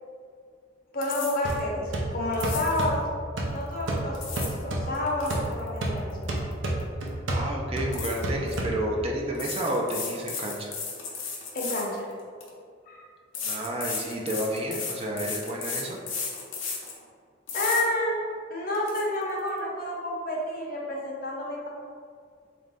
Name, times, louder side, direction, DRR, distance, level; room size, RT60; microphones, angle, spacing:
voice 1, 0.9-3.0 3.5-6.5 11.5-12.1 12.9-13.0 17.5-18.2 18.5-21.7, left 1 dB, 50° left, -2 dB, 0.7 m, -30 dB
sound 1, 1.0-1.6 2.3-2.9 3.9-4.6 4.9-6.8 7.1-7.3 7.9-8.6 9.3-12.5 13.3-17.0 17.5-17.8 18.3-18.4 18.7-19.0, left 5 dB, 85° left, 0.7 m, -35 dB
sound 2, 1.4-9.2, right 1 dB, 80° right, 0.6 m, -31 dB
voice 2, 7.3-10.7 13.4-16.0, right 1 dB, 30° right, -1 dB, 0.4 m, -30 dB
4.0 x 2.6 x 3.4 m, 2.2 s
head